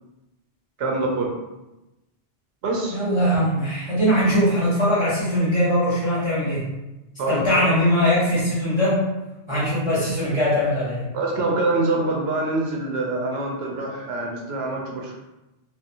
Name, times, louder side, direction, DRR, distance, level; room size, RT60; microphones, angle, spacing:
voice 1, 0.8-1.3 2.6-3.0 7.2-7.7 11.1-15.1, right 2 dB, 80° right, 0 dB, 0.8 m, -25 dB
voice 2, 2.9-6.7 7.3-9.0 9.5-11.1, equal, 30° left, -9 dB, 1.0 m, -21 dB
2.7 x 2.3 x 2.6 m, 0.99 s
omnidirectional pair, 1.0 m